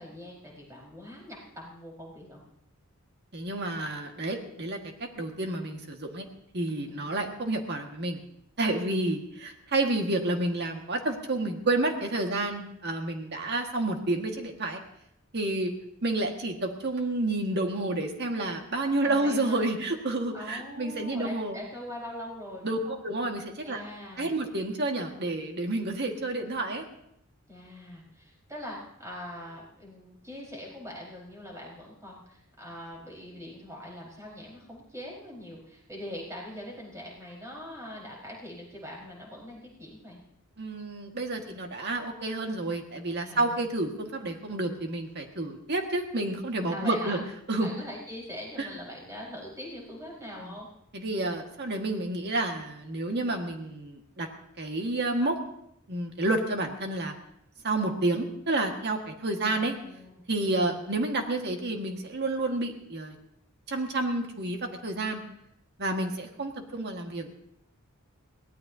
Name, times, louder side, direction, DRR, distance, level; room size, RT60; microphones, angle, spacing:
voice 1, 0.0-2.4 6.9-7.1 19.0-19.6 20.3-22.9 23.6-24.3 27.5-40.2 43.2-43.6 46.7-47.3 47.6-50.7 59.4-60.8, left 1 dB, 15° right, -3 dB, 4.8 m, -42 dB
voice 2, 3.3-6.3 6.5-8.2 8.6-14.8 15.3-15.7 16.0-21.6 22.6-23.8 24.2-26.8 40.6-47.2 47.5-47.7 48.6-48.7 50.4-50.5 50.9-54.3 54.6-55.4 55.9-57.1 57.6-59.8 60.3-63.2 63.7-65.2 65.8-67.3, right 2 dB, 55° right, 3 dB, 1.8 m, -30 dB
22.5 x 17.0 x 2.8 m, 0.75 s
head